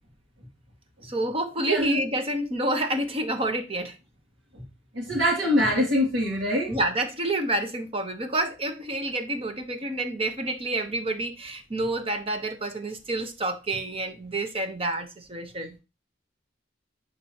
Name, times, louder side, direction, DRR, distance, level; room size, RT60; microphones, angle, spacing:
voice 1, 1.0-3.9 6.7-15.7, right 1 dB, 30° right, 1.2 m, -28 dB
voice 2, 5.1-6.8, left 1 dB, 70° right, 2.8 m, -23 dB
11.0 x 4.5 x 3.0 m
head